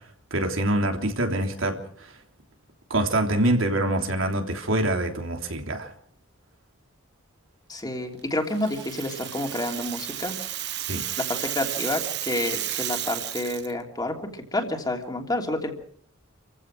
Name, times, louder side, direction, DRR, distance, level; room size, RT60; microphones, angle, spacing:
voice 1, 0.3-2.1 2.9-5.9 10.9-11.0, right 1 dB, 85° right, 3 dB, 3.4 m, -25 dB
voice 2, 7.7-10.3 11.2-14.2 14.5-15.7, left 1 dB, 20° left, 3 dB, 3.1 m, -29 dB
Rattle (instrument), 8.5-13.7, right 12 dB, 60° right, 1.2 m, -32 dB
28.5 x 15.5 x 6.3 m, 0.62 s
head